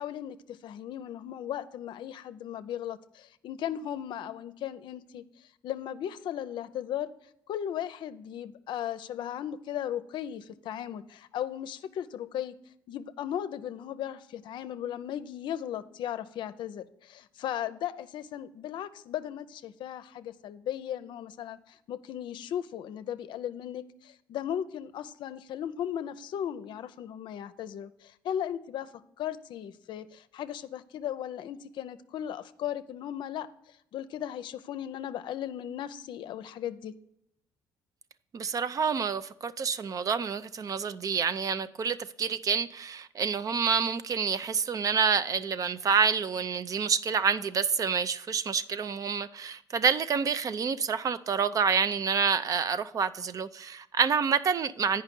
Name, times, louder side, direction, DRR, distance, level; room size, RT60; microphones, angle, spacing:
voice 1, 0.0-7.1 7.5-12.5 12.9-28.9 29.2-36.9, left 10 dB, 70° left, 0.5 m, -36 dB
voice 2, 38.3-55.0, right 6 dB, 45° right, 0.5 m, -28 dB
8.9 x 5.4 x 5.2 m
cardioid pair, 85°, 8 cm